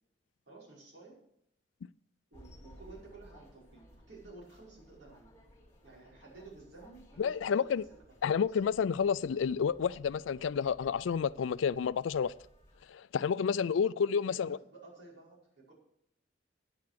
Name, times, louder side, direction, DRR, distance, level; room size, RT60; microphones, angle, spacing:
voice 1, 0.5-1.2 2.3-5.3 5.8-8.0 8.5-8.6 14.2-15.7, right 3 dB, 70° right, 5.4 m, -53 dB
sound 1, 2.3-12.9, equal, 15° left, 3.1 m, -59 dB
voice 2, 7.2-7.8 8.2-12.3 12.9-14.6, left 6 dB, 90° left, 0.4 m, -30 dB
9.8 x 9.5 x 6.7 m
head